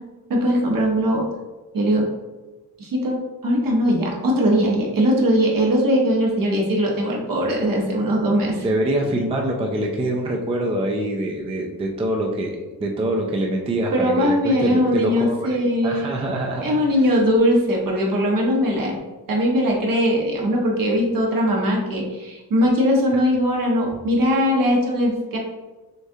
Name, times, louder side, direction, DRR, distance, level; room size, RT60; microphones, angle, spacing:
voice 1, 0.3-1.3 1.7-2.1 2.8-8.6 13.9-16.2 16.6-19.0 19.3-25.4, equal, 60° right, -2 dB, 1.1 m, -20 dB
voice 2, 8.6-15.4 15.8-17.1, right 1 dB, 15° right, 1 dB, 0.4 m, -25 dB
6.3 x 2.4 x 2.7 m, 1.2 s
wide cardioid pair, 160°, 38 cm